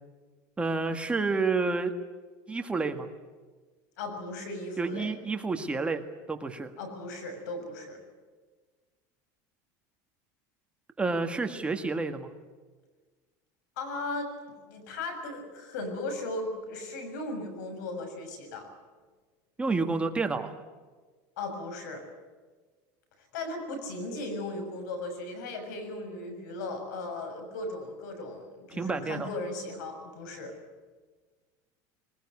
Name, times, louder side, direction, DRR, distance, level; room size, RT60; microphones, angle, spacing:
voice 1, 0.6-1.9 2.5-3.1 4.8-6.7 11.0-12.3 19.6-20.5 28.7-29.3, right 3 dB, 10° right, 6 dB, 1.6 m, -29 dB
voice 2, 4.0-5.1 6.8-8.0 13.8-14.3 14.6-18.7 21.4-22.0 23.3-30.5, left 2 dB, 90° left, 7 dB, 6.8 m, -37 dB
22.0 x 20.5 x 9.8 m, 1.4 s
supercardioid pair, 140°, 9 cm